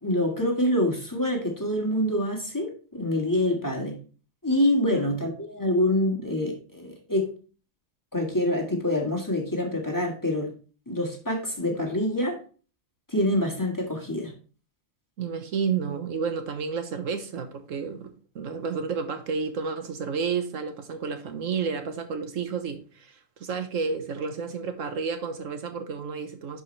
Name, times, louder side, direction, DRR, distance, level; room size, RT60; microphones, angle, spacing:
voice 1, 0.0-4.0 4.4-7.3 8.1-10.5 10.9-12.4 13.1-14.3, left 1 dB, 15° left, 1.7 m, -26 dB
voice 2, 15.2-26.6, right 5 dB, 80° right, 1.4 m, -31 dB
10.5 x 5.2 x 3.2 m
omnidirectional pair, 1.3 m